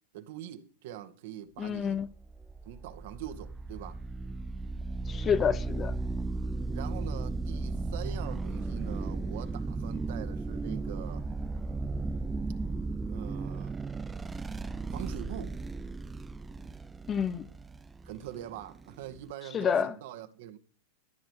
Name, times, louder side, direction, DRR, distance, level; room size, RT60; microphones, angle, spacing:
voice 1, 0.1-2.0 2.6-4.0 6.7-11.3 13.1-13.8 14.9-15.5 18.0-20.6, right 12 dB, 65° right, 1.9 m, -43 dB
voice 2, 1.6-2.1 5.1-5.9 17.1-17.5 19.5-19.9, left 7 dB, 25° left, 0.8 m, -28 dB
sound 1, 2.0-19.3, right 3 dB, 15° right, 0.7 m, -35 dB
14.0 x 10.5 x 6.7 m
hypercardioid pair, 110°, 0 cm